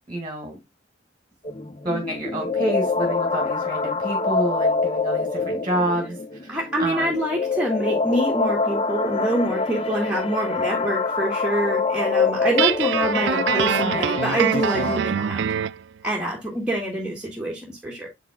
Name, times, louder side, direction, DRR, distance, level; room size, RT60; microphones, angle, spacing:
voice 1, 0.1-0.6 1.8-7.2, right 1 dB, 25° right, 2.0 m, -28 dB
sound 1, 1.4-15.0, left 4 dB, 30° left, 0.6 m, -25 dB
voice 2, 6.5-15.5 16.0-18.1, right 1 dB, 5° right, 1.7 m, -26 dB
Guitar, 12.6-15.8, right 9 dB, 65° right, 0.3 m, -24 dB
7.4 x 5.8 x 2.3 m
head